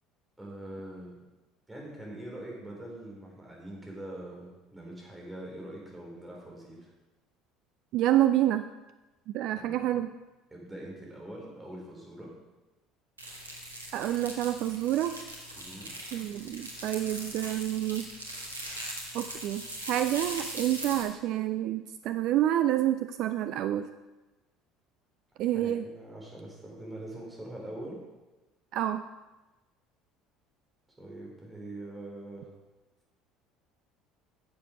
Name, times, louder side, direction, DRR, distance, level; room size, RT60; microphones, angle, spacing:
voice 1, 0.4-1.1 1.7-6.9 9.5-9.8 10.5-12.3 15.5-15.9 25.4-28.0 31.0-32.5, right 1 dB, 15° right, -2 dB, 4.2 m, -43 dB
voice 2, 7.9-8.7 9.3-10.1 13.9-15.2 16.1-18.1 19.1-23.9 25.4-25.9 28.7-29.0, right 13 dB, 55° right, 11 dB, 0.4 m, -28 dB
sound 1, 13.2-21.0, right 1 dB, 85° right, 1.6 m, -40 dB
10.5 x 7.4 x 5.1 m, 1.1 s
figure-of-eight pair, 60°, 0 cm